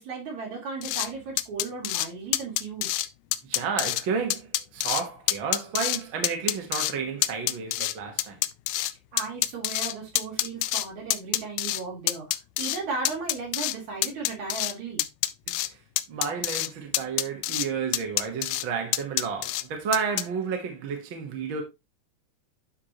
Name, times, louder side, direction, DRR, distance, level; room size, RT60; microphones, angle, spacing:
voice 1, 0.0-2.9 9.1-12.3 12.6-15.0, right 4 dB, 65° right, 4.5 m, -35 dB
sound 1, 0.8-1.1 1.4-2.1 2.3-3.1 3.3-4.0 4.3-5.0 5.3-6.0 6.2-6.9 7.2-8.9 9.2-10.9 11.1-11.8 12.1-12.8 13.1-13.8 14.0-14.7 15.0-15.7 16.0-16.7 16.9-17.7 17.9-18.6 18.9-19.6 19.9-20.2, left 16 dB, 80° left, 1.8 m, -27 dB
voice 2, 3.4-8.4 15.5-15.8 16.1-21.6, right 6 dB, 50° right, 1.8 m, -31 dB
11.5 x 4.7 x 3.0 m
omnidirectional pair, 3.6 m